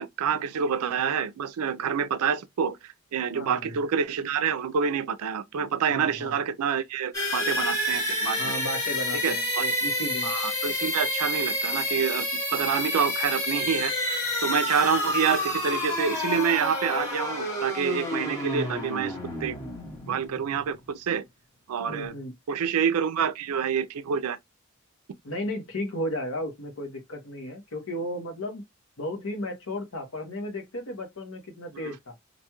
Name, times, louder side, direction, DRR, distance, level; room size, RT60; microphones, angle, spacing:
voice 1, 0.0-8.5 9.2-9.6 10.2-19.6 20.1-21.3 21.7-22.1 22.5-24.4 31.8-31.9, right 7 dB, 85° right, 0.4 m, -27 dB
voice 2, 3.3-3.8 5.9-6.4 8.4-10.3 21.9-22.3 25.2-28.6 29.0-32.1, left 1 dB, 70° left, 1.0 m, -34 dB
sound 1, 7.1-20.8, left 1 dB, 15° left, 0.8 m, -29 dB
2.5 x 2.3 x 2.8 m
head